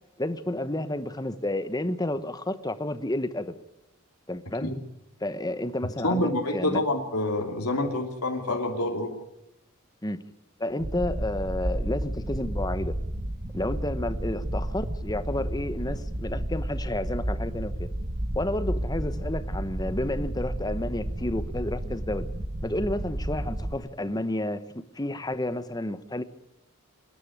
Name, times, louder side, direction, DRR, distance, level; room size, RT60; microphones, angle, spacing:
voice 1, 0.2-3.6 4.3-4.7 5.2-6.8 10.0-10.2 10.6-12.9 13.5-17.9 18.3-22.3 22.6-24.6 24.9-26.2, left 1 dB, 15° left, 1.0 m, -31 dB
voice 2, 6.0-9.1, left 1 dB, 90° left, 3.0 m, -27 dB
sound 1, 10.8-23.7, right 1 dB, 30° right, 1.2 m, -32 dB
27.0 x 10.5 x 9.3 m
head